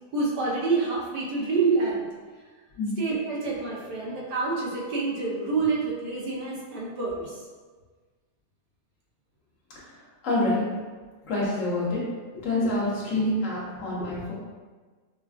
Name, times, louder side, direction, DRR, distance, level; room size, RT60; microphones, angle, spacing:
voice 1, 0.1-2.1 3.0-7.3, right 4 dB, 80° right, -4 dB, 1.4 m, -27 dB
voice 2, 10.2-10.7 11.2-12.0 12.4-14.3, left 1 dB, 55° left, -6 dB, 1.2 m, -26 dB
4.8 x 2.2 x 2.4 m, 1.4 s
omnidirectional pair, 1.7 m